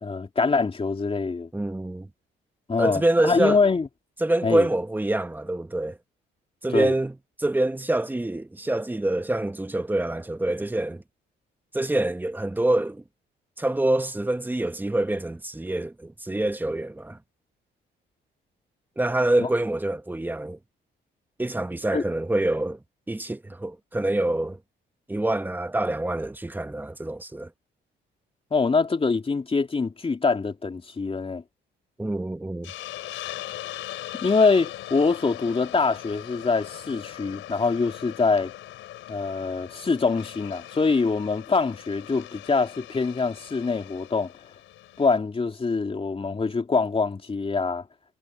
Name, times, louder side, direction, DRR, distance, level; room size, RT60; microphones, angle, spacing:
voice 1, 0.0-1.5 2.7-3.9 4.4-4.7 6.7-6.9 19.4-19.5 21.9-22.0 28.5-31.4 34.1-38.5 39.1-44.3 45.0-47.8, left 4 dB, 30° left, 3.0 m, -24 dB
voice 2, 1.5-2.1 2.8-3.6 4.2-6.0 6.6-11.0 11.7-13.0 13.6-17.2 19.0-20.6 21.4-22.8 23.1-24.6 25.1-27.5 32.0-32.7, right 1 dB, 10° right, 1.0 m, -26 dB
Hiss, 32.6-45.2, left 14 dB, 90° left, 4.1 m, -40 dB
cardioid pair, 90°, 20 cm